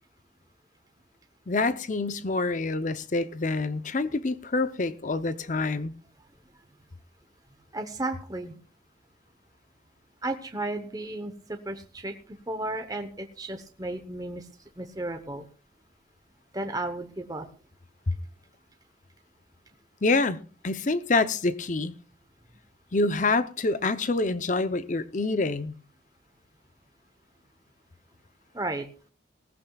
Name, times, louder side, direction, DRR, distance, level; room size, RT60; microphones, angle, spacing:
voice 1, 1.5-5.9 20.0-21.9 22.9-25.7, left 3 dB, 40° left, 0.6 m, -26 dB
voice 2, 7.7-8.6 10.2-12.1 12.5-14.5 14.8-15.4 16.5-17.5 28.5-28.9, right 2 dB, 20° right, 0.9 m, -33 dB
18.0 x 14.5 x 2.3 m
head